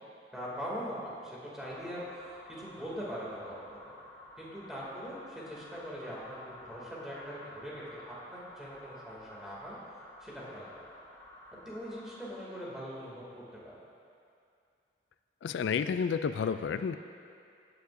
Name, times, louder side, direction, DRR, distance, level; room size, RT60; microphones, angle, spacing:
voice 1, 0.3-3.9 4.4-9.8 10.2-10.6 11.5-13.7, equal, 5° right, -7 dB, 2.5 m, -42 dB
sound 1, 1.6-12.4, left 1 dB, 15° left, 1.0 m, -52 dB
voice 2, 15.4-17.0, left 6 dB, 85° left, 11 dB, 0.3 m, -30 dB
16.0 x 9.2 x 2.6 m, 2.4 s
head